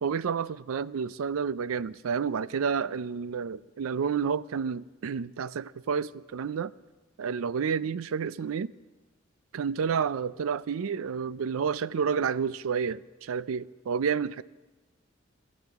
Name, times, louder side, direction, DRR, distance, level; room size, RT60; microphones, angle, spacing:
voice 1, 0.0-6.7 7.2-8.7 9.5-14.4, right 6 dB, 85° right, 0.4 m, -30 dB
26.5 x 14.5 x 3.5 m
head